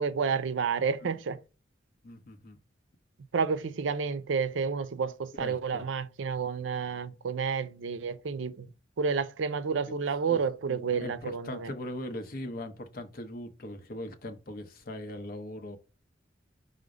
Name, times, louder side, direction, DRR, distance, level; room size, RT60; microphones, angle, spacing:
voice 1, 0.0-1.4 3.3-8.7 9.0-11.7, right 5 dB, 85° right, 0.4 m, -30 dB
voice 2, 2.0-2.6 5.4-5.8 9.9-10.0 10.3-10.4 10.7-15.8, left 1 dB, 50° left, 0.7 m, -40 dB
5.0 x 2.1 x 4.7 m
head